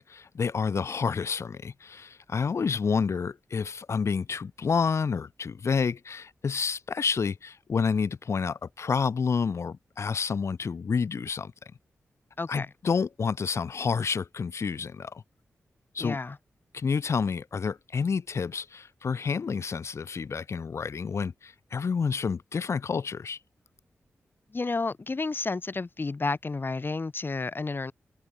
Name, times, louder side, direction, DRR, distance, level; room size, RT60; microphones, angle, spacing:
voice 1, 0.0-11.5 12.5-15.2 15.9-16.2 16.7-23.4, left 5 dB, 65° left, 0.8 m, -29 dB
voice 2, 12.4-12.7 16.0-16.4 24.5-27.9, left 3 dB, 45° left, 1.9 m, -31 dB
cardioid pair, 55°, 5 cm